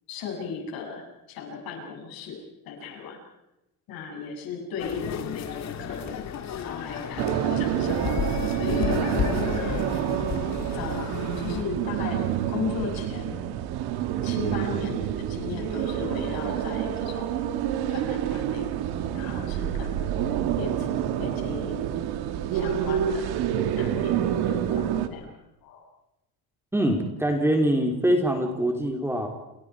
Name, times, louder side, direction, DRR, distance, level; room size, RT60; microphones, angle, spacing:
voice 1, 0.1-2.4 2.6-3.2 3.9-6.2 6.5-8.0 8.2-9.9 10.7-11.1 11.3-12.2 12.5-13.4 14.2-17.4 17.9-18.7 19.1-21.8 22.5-23.4 23.7-25.3 25.6-25.9, left 6 dB, 70° left, 0 dB, 7.8 m, -36 dB
sound 1, 4.8-11.6, left 7 dB, 45° left, 2.1 m, -32 dB
sound 2, 7.2-25.1, right 10 dB, 90° right, 2.3 m, -28 dB
voice 2, 26.7-29.3, right 1 dB, 5° right, 2 dB, 3.2 m, -24 dB
29.5 x 29.0 x 4.8 m, 0.91 s
cardioid pair, 155°, 37 cm